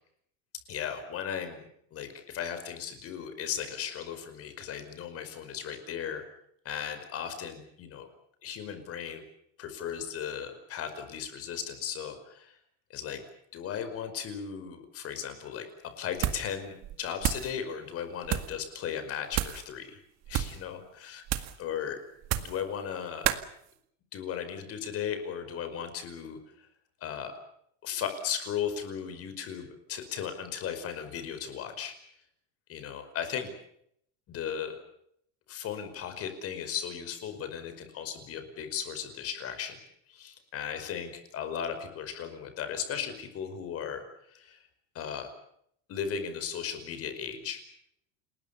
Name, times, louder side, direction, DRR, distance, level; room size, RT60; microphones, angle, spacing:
voice 1, 0.7-6.2 6.7-8.1 8.4-9.2 9.6-12.6 12.9-13.2 13.5-15.7 16.0-20.0 20.3-21.2 21.6-22.0 22.3-23.3 24.1-26.7 27.0-27.4 27.8-32.0 32.7-33.5 34.3-34.8 35.5-39.8 40.1-44.0 44.3-44.6 44.9-45.3 45.9-47.6, left 8 dB, 35° left, 9 dB, 5.3 m, -36 dB
sound 1, 16.2-16.6 16.8-17.5 18.2-18.6 19.3-19.7 20.2-20.6 21.3-21.6 22.2-22.6 23.2-23.5, right 13 dB, 40° right, 2.0 m, -31 dB
29.5 x 21.0 x 7.0 m, 0.71 s
cardioid pair, 160°, 39 cm